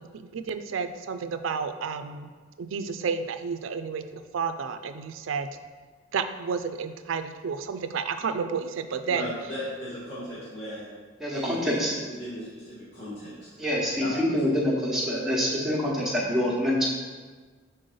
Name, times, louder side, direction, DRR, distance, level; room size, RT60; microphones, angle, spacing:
voice 1, 0.0-2.3 2.6-5.5 6.1-9.3, right 5 dB, 75° right, 9 dB, 0.4 m, -31 dB
voice 2, 9.1-10.9 11.3-13.3 14.0-14.1, equal, 30° left, -10 dB, 1.5 m, -37 dB
voice 3, 11.2-11.9 13.6-16.9, left 1 dB, ahead, -5 dB, 1.0 m, -26 dB
6.5 x 4.1 x 3.8 m, 1.4 s
head